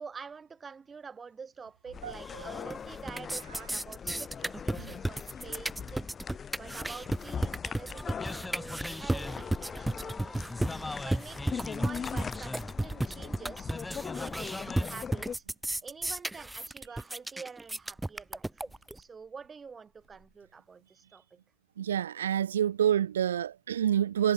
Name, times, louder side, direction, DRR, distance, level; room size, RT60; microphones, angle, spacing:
voice 1, 0.0-6.1 6.6-10.4 11.0-15.4 15.8-18.6 18.9-21.4, right 5 dB, 25° right, 4.9 m, -47 dB
sound 1, 1.9-15.4, left 7 dB, 30° left, 2.0 m, -41 dB
sound 2, 2.3-2.7 3.0-19.0, right 1 dB, 10° right, 0.9 m, -34 dB
sound 3, 7.9-15.0, left 2 dB, 10° left, 1.7 m, -42 dB
voice 2, 21.8-24.3, right 10 dB, 80° right, 0.4 m, -27 dB
figure-of-eight pair, 65°, 0 cm